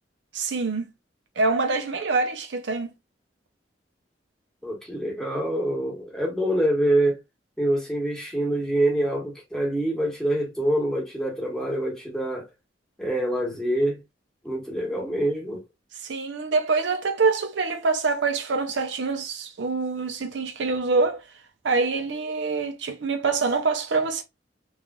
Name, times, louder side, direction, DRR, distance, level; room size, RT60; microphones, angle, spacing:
voice 1, 0.3-0.9 1.4-2.9 16.0-21.3 21.6-24.2, right 4 dB, 75° right, 0.6 m, -25 dB
voice 2, 4.6-7.2 7.6-12.5 13.0-14.0 14.4-15.6, right 1 dB, 5° left, 1.1 m, -25 dB
3.1 x 2.4 x 2.3 m
head